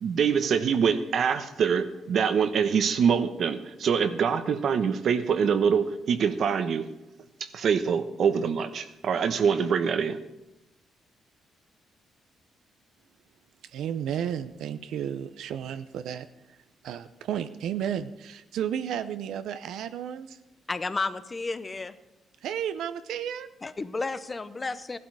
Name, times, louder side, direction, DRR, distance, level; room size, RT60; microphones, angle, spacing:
voice 1, 0.0-6.8 7.4-10.2, right 6 dB, 60° right, 10 dB, 1.1 m, -25 dB
voice 2, 13.7-16.3 16.8-20.4 22.4-23.5, right 9 dB, 80° right, 11 dB, 0.7 m, -32 dB
voice 3, 20.7-22.0 23.6-25.0, left 3 dB, 25° left, 13 dB, 0.7 m, -32 dB
15.0 x 12.0 x 4.8 m, 0.94 s
cardioid pair, 90°, 0 cm